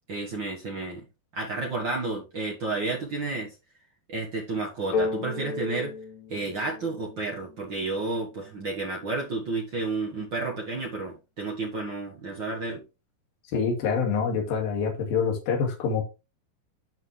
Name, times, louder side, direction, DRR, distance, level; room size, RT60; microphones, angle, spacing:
voice 1, 0.1-1.0 1.3-3.5 4.1-5.9 6.3-12.8, right 3 dB, 75° right, 1.0 m, -31 dB
sound 1, 4.9-8.6, left 4 dB, 80° left, 4.4 m, -34 dB
voice 2, 13.5-16.0, left 5 dB, 65° left, 3.8 m, -26 dB
10.0 x 5.7 x 3.3 m
omnidirectional pair, 4.7 m